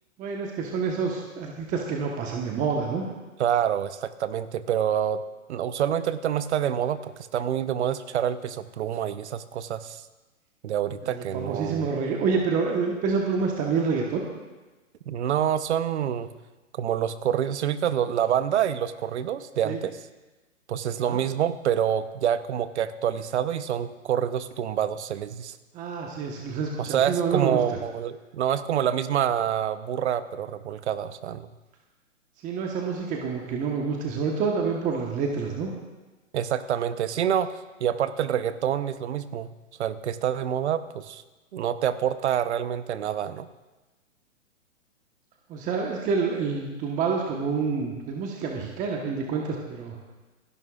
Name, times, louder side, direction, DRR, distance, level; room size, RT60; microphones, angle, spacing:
voice 1, 0.2-3.1 11.0-14.2 19.6-19.8 21.0-21.2 25.7-27.8 32.4-35.7 45.5-50.0, right 5 dB, 20° right, 0 dB, 1.2 m, -28 dB
voice 2, 3.4-5.2 5.5-10.0 10.6-11.9 15.1-16.3 16.7-20.0 20.7-25.6 26.8-31.5 36.3-39.5 39.8-41.2 41.5-43.5, right 9 dB, 60° right, 13 dB, 0.9 m, -27 dB
28.5 x 11.0 x 2.4 m, 1.2 s
hypercardioid pair, 135°, 39 cm